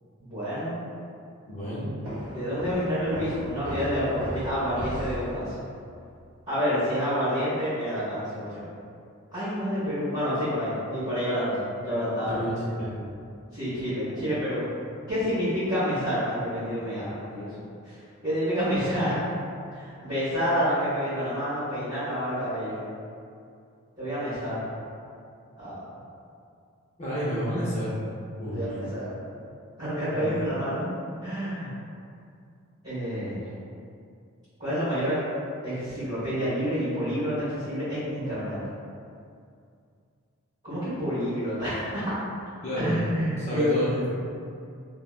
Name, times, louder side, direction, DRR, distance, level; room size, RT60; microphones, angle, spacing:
voice 1, 0.2-0.7 2.3-5.5 6.5-8.7 9.3-12.4 13.5-14.6 15.1-17.5 17.8-18.0 18.2-19.2 19.7-22.8 24.0-24.7 25.6-25.8 28.5-29.2 29.8-30.9 31.2-31.7 32.8-33.5 34.6-35.2 35.6-38.6 40.6-42.1 42.7-43.7, equal, 30° right, -18 dB, 1.3 m, -28 dB
voice 2, 1.5-1.9 12.2-12.9 27.0-27.9 28.4-28.8 30.2-30.3 42.6-43.0 43.4-44.1, equal, 30° left, -9 dB, 0.4 m, -30 dB
sound 1, 2.0-5.7, equal, 80° right, 0.6 m, -36 dB
2.9 x 2.1 x 2.3 m, 2.4 s
head